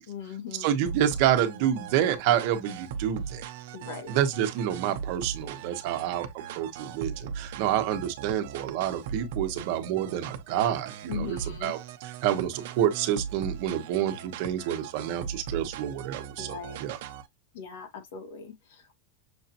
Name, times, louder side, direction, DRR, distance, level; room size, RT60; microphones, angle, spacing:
voice 1, 0.1-0.9 3.7-4.1 11.1-11.7 16.4-16.8 17.5-19.0, left 7 dB, 80° left, 1.8 m, -40 dB
voice 2, 0.6-3.4 4.1-6.3 6.6-17.0, right 10 dB, 50° right, 1.1 m, -28 dB
sound 1, 0.9-17.3, right 7 dB, 65° right, 0.8 m, -39 dB
6.3 x 2.8 x 2.6 m
supercardioid pair, 165°, 0 cm